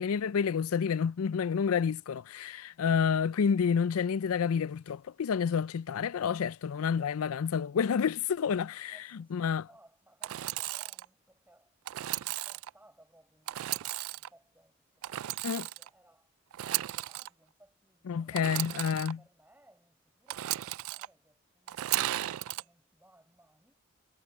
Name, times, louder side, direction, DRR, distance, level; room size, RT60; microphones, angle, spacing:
voice 1, 0.0-9.0 9.3-9.7 15.4-15.7 18.1-19.2, left 6 dB, 75° left, 0.4 m, -29 dB
voice 2, 8.9-18.7 19.2-22.1 22.5-23.7, right 1 dB, 10° right, 7.4 m, -64 dB
Engine / Sawing, 10.2-11.1 11.9-12.7 13.5-14.3 15.0-15.9 16.5-17.3 18.3-19.1 20.3-21.1 21.7-22.6, right 15 dB, 75° right, 0.3 m, -35 dB
head